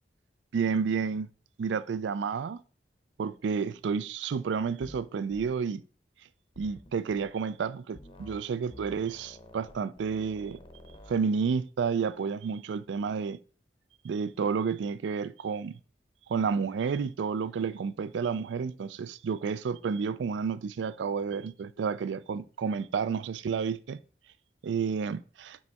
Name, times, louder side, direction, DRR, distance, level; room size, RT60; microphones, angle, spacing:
voice 1, 0.5-1.3 1.6-2.6 3.2-5.8 6.6-10.6 11.1-13.4 14.0-15.8 16.3-24.0 24.6-25.6, right 6 dB, 75° right, 0.4 m, -30 dB
sound 1, 4.8-5.0 5.3-5.5 6.5-7.3 7.9-8.4 8.7-11.2, left 1 dB, 30° left, 0.8 m, -50 dB
5.2 x 5.2 x 3.4 m
head